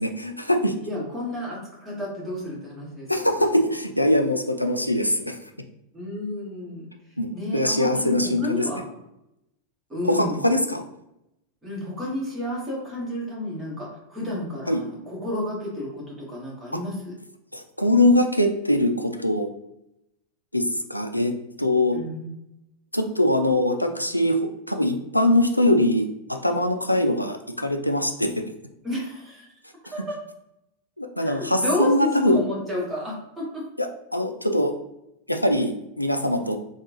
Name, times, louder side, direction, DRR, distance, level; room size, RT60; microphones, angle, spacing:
voice 1, 0.0-0.7 3.1-5.4 7.2-7.3 7.5-8.6 10.0-10.8 14.7-14.8 17.5-19.5 20.5-20.6 20.9-21.3 21.6-22.0 22.9-24.4 24.7-26.1 26.4-28.3 31.0-32.4 33.8-34.7 35.3-36.6, left 1 dB, 90° left, 5 dB, 0.3 m, -22 dB
voice 2, 0.8-3.6 5.9-6.9 7.3-9.0 9.9-10.5 11.6-17.1 21.9-22.4 28.8-29.5 29.9-30.2 31.2-33.6, left 1 dB, 15° right, -5 dB, 1.4 m, -31 dB
3.4 x 2.3 x 3.0 m, 0.86 s
figure-of-eight pair, 90°, 0 cm